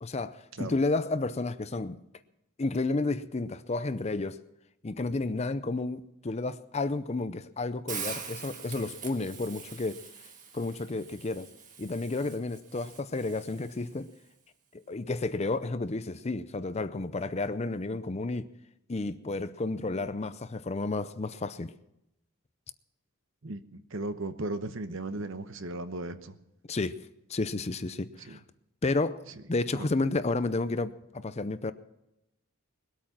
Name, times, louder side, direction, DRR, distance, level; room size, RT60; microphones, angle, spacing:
voice 1, 0.0-2.0 2.6-4.4 4.8-10.0 10.5-11.5 11.8-14.1 14.7-18.5 18.9-21.7 26.7-26.9 27.3-28.4 28.8-29.2 29.5-31.7, left 3 dB, 30° left, 0.5 m, -31 dB
Hiss, 7.9-13.9, right 6 dB, 35° right, 1.6 m, -43 dB
voice 2, 23.4-26.3 28.2-28.4 29.8-29.9, right 2 dB, 60° right, 1.0 m, -36 dB
21.0 x 8.6 x 6.0 m
head